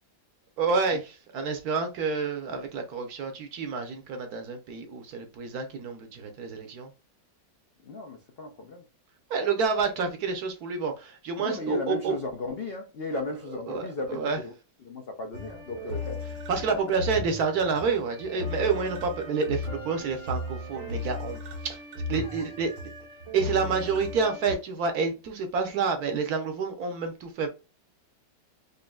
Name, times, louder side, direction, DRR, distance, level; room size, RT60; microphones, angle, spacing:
voice 1, 0.6-1.0 1.3-6.9 9.3-12.1 13.1-13.2 13.7-13.9 14.2-14.4 16.5-21.8 22.1-22.7 23.3-27.5, right 5 dB, 65° right, 1.2 m, -28 dB
voice 2, 7.8-8.9 11.4-14.5 14.8-16.4 22.2-22.5, left 1 dB, 65° left, 0.5 m, -35 dB
sound 1, 15.3-24.5, left 2 dB, 90° right, 2.0 m, -36 dB
5.2 x 2.6 x 2.3 m
omnidirectional pair, 1.9 m